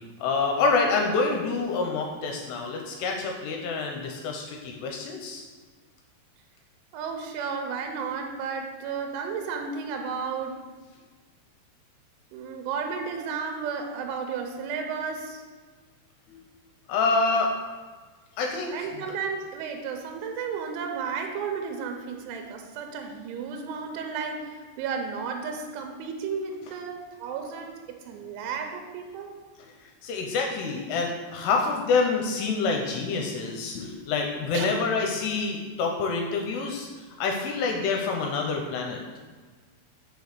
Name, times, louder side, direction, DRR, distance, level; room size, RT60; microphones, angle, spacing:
voice 1, 0.2-5.4 16.3-16.4 16.9-17.5 18.4-18.7 30.0-36.9 37.2-39.0, left 4 dB, 80° left, 2 dB, 2.6 m, -27 dB
voice 2, 6.9-10.6 12.3-15.4 18.7-29.4 34.5-34.7, right 5 dB, 90° right, 4 dB, 3.2 m, -33 dB
6.2 x 5.3 x 6.5 m, 1.4 s
omnidirectional pair, 5.4 m